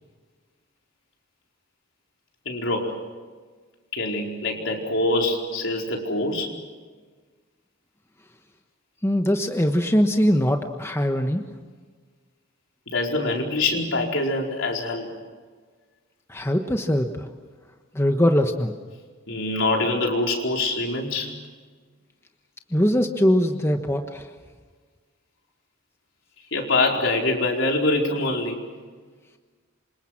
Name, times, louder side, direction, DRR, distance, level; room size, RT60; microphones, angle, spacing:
voice 1, 2.4-2.9 3.9-6.5 12.9-15.1 19.3-21.3 26.5-28.6, left 2 dB, 70° left, 1 dB, 4.7 m, -24 dB
voice 2, 9.0-11.4 16.3-17.3 17.9-18.7 22.7-24.3, equal, 15° left, 5 dB, 1.3 m, -21 dB
27.5 x 26.0 x 6.0 m, 1.5 s
head